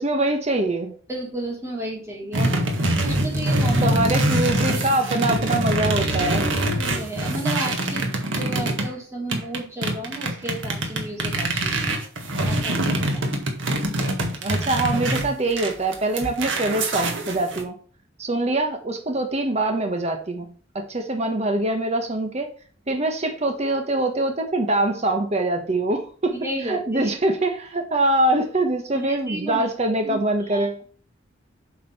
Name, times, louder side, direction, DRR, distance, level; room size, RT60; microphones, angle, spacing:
voice 1, 0.0-1.0 2.4-2.5 3.8-6.5 14.4-17.8 18.2-22.5 22.9-26.3 26.7-30.8, right 2 dB, 35° right, 5 dB, 1.2 m, -24 dB
voice 2, 1.1-2.5 3.0-3.9 4.7-4.8 6.7-13.3 26.3-27.1 28.9-29.7 30.0-30.2 30.5-30.8, right 1 dB, 15° right, -2 dB, 2.9 m, -33 dB
sound 1, 2.3-8.9 9.3-17.6, right 1 dB, 80° right, 1.7 m, -24 dB
7.9 x 5.0 x 5.9 m, 0.42 s
head